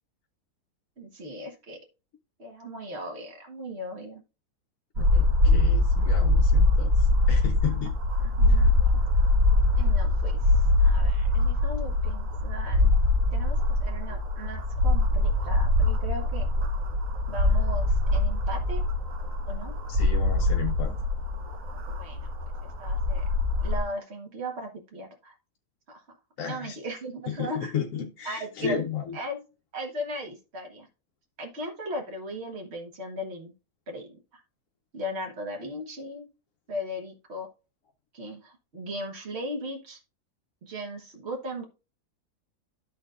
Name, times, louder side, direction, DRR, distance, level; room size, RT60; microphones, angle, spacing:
voice 1, 1.0-1.8 2.4-4.2 8.2-9.0 9.8-12.9 13.3-16.5 17.3-18.8 19.5-19.8 21.9-22.3 22.8-23.2 23.6-25.4 25.9-26.0 26.4-27.7 28.3-28.9 29.1-29.4 29.7-30.9 31.4-33.5 33.9-34.4 34.9-36.3 36.7-37.5 38.1-40.0 40.6-41.6, equal, 45° right, 1.6 m, -37 dB
voice 2, 5.0-8.0 19.9-21.0 26.4-26.8 27.3-29.2, left 7 dB, 65° left, 1.1 m, -33 dB
sound 1, 5.0-23.8, left 2 dB, 60° right, 1.4 m, -23 dB
13.0 x 4.4 x 2.5 m
omnidirectional pair, 1.7 m